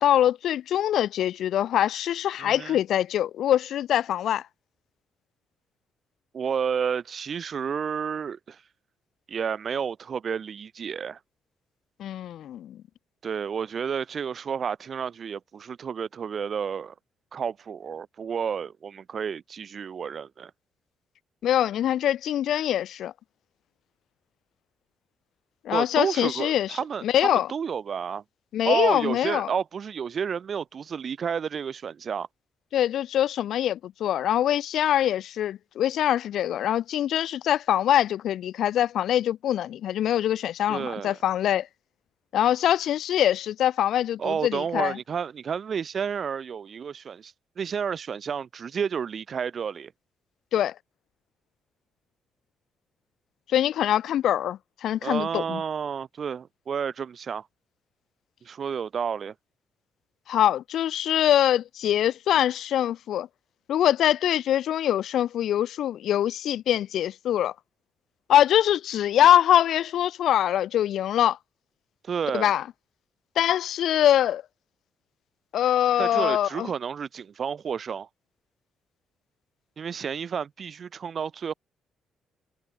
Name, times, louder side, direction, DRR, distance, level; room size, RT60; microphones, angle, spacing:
voice 1, 0.0-4.4 12.0-12.8 21.4-23.1 25.6-27.5 28.5-29.5 32.7-41.7 42.3-45.0 50.5-50.7 53.5-55.6 60.3-63.3 63.7-67.5 68.3-71.4 72.3-72.6 73.4-74.4 75.5-76.7, left 11 dB, 75° left, 0.9 m, -23 dB
voice 2, 2.4-2.8 6.3-8.6 9.3-11.2 13.2-16.9 17.3-20.5 25.7-28.2 28.6-32.3 40.7-41.2 44.2-49.9 55.0-57.5 58.4-59.3 72.0-72.5 76.0-78.1 79.8-81.5, right 7 dB, 55° right, 3.0 m, -31 dB
cardioid pair, 75°, 0 cm